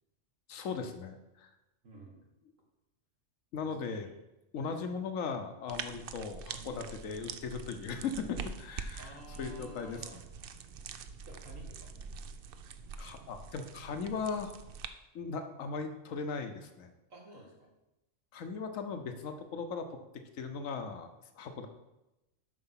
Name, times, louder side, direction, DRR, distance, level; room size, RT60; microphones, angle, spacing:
voice 1, 0.5-1.5 3.5-4.1 4.5-10.2 13.0-14.5 15.1-16.9 18.3-20.0 20.3-21.7, left 5 dB, 90° left, 7 dB, 1.2 m, -38 dB
voice 2, 1.8-2.2 3.6-3.8 4.0-4.1 5.7-5.8 6.6-6.8 9.0-10.2 11.2-12.0 17.1-17.7, right 1 dB, 80° right, 0 dB, 2.2 m, -52 dB
sound 1, 5.7-14.9, right 6 dB, 60° right, 0.6 m, -45 dB
8.0 x 5.7 x 5.7 m, 0.94 s
omnidirectional pair, 1.3 m